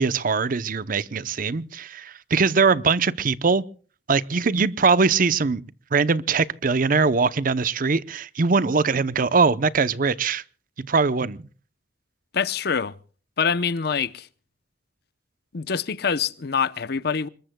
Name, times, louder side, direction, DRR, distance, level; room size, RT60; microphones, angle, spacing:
voice 1, 0.0-3.6 4.1-5.6 5.9-10.4 10.8-11.5, right 4 dB, 50° right, 0.7 m, -22 dB
voice 2, 12.3-13.0 13.4-14.3 15.5-17.3, left 6 dB, 60° left, 0.7 m, -25 dB
26.5 x 21.5 x 2.2 m
head